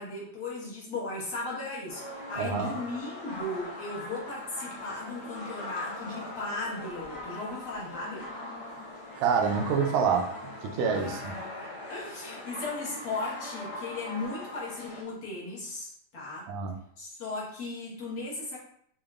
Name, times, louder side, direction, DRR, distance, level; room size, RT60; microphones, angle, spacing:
voice 1, 0.0-8.3 10.9-11.5 11.9-16.5 17.0-18.6, left 2 dB, 45° left, -7 dB, 1.3 m, -37 dB
sound 1, 1.9-15.0, left 1 dB, 70° left, 1.2 m, -41 dB
voice 2, 2.4-2.7 9.2-10.3 10.6-11.3 16.5-16.7, right 6 dB, 80° right, 4 dB, 1.6 m, -27 dB
6.9 x 3.1 x 2.4 m, 0.68 s
omnidirectional pair, 3.7 m